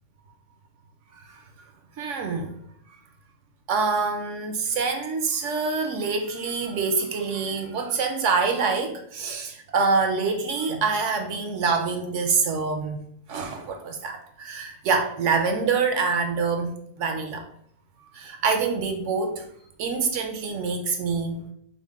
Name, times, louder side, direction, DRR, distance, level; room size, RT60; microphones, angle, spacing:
voice 1, 2.0-2.5 3.7-13.0 13.3-17.4 18.1-19.5 19.8-21.4, right 4 dB, 70° right, 4 dB, 0.8 m, -26 dB
5.1 x 2.1 x 3.5 m, 0.68 s
omnidirectional pair, 1.5 m